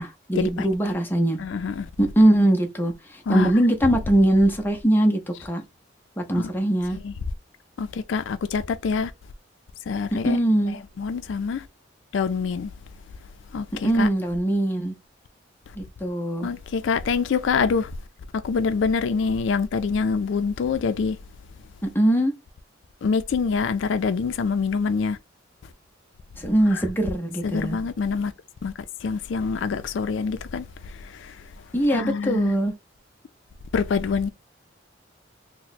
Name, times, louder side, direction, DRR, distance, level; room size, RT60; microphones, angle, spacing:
voice 1, 0.0-1.4 2.0-5.6 6.2-7.0 10.1-10.8 13.8-14.9 15.8-16.5 21.8-22.3 26.4-27.8 31.7-32.7, right 1 dB, 10° left, 0.6 m, -21 dB
voice 2, 1.4-1.9 3.3-3.5 6.3-6.5 7.0-7.1 7.8-9.1 9.9-10.4 11.0-11.7 12.1-12.7 13.5-14.1 16.4-17.9 18.4-21.2 23.0-25.2 26.7-26.8 27.4-28.3 28.6-28.7 29.0-30.6 31.0-31.3 31.9-32.5 33.7-34.3, left 5 dB, 85° left, 0.4 m, -25 dB
2.9 x 2.1 x 4.0 m
head